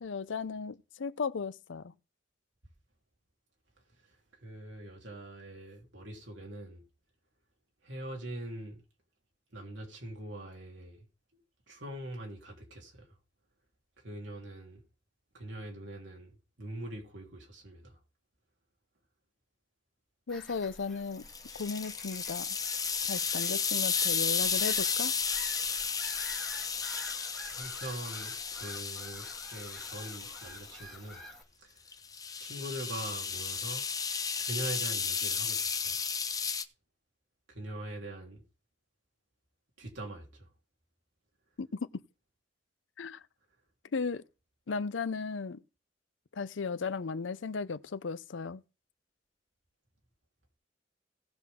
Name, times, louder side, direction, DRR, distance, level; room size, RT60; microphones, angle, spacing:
voice 1, 0.0-1.9 20.3-21.2 21.6-22.6 23.1-25.1 41.6-41.7 41.9-42.0 43.0-43.2 43.9-44.2 44.7-45.6 46.3-48.6, left 4 dB, 85° left, 0.6 m, -35 dB
voice 2, 4.4-6.8 7.8-8.8 9.5-11.0 11.7-13.1 14.0-14.8 15.3-16.3 16.6-18.0 27.5-31.2 31.6-31.8 32.4-33.8 34.4-36.0 37.5-38.4 39.8-40.5, right 1 dB, 75° right, 3.3 m, -43 dB
Bird vocalization bird call bird song / Gull seagull, 20.3-31.4, left 1 dB, 5° left, 2.8 m, -49 dB
sound 1, 21.2-30.8 31.9-36.6, left 6 dB, 20° left, 0.7 m, -33 dB
17.5 x 5.9 x 3.6 m
head